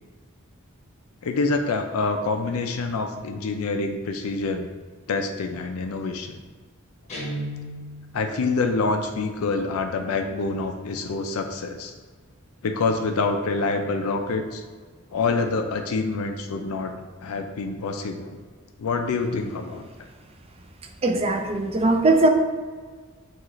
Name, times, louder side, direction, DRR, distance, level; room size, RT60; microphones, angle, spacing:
voice 1, 1.2-4.7 5.1-6.4 8.1-11.9 12.6-14.6 15.1-16.9 17.2-18.4 18.8-19.9, left 3 dB, 90° left, 5 dB, 0.4 m, -26 dB
Guitar, 7.1-8.3, right 1 dB, 35° left, 0.8 m, -33 dB
voice 2, 21.0-22.3, right 2 dB, 30° right, 4 dB, 0.4 m, -20 dB
6.1 x 2.4 x 3.0 m, 1.5 s
head